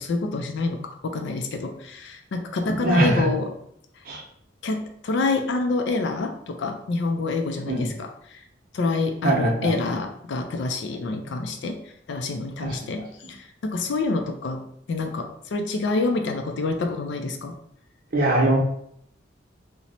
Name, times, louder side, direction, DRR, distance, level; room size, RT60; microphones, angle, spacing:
voice 1, 0.0-3.5 4.6-8.4 8.7-11.8 12.1-14.6 14.9-17.5, left 3 dB, 70° left, 5 dB, 0.4 m, -27 dB
voice 2, 2.6-3.2 4.1-4.2 7.7-7.9 9.2-9.7 12.6-12.9 18.1-18.6, right 1 dB, 50° right, 0 dB, 0.7 m, -22 dB
2.9 x 2.1 x 4.0 m, 0.71 s
head